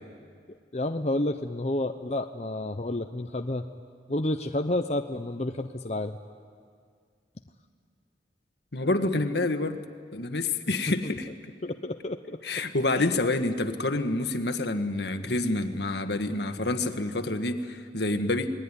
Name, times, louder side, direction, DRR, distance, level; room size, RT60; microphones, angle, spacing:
voice 1, 0.7-3.7 4.1-6.2 11.0-11.1 11.6-12.6 13.0-13.1 15.2-15.4, left 1 dB, 40° left, 5 dB, 0.8 m, -30 dB
voice 2, 8.7-9.8 10.1-11.3 12.4-18.5, left 2 dB, 70° left, 8 dB, 1.6 m, -28 dB
28.0 x 20.0 x 9.9 m, 2.1 s
head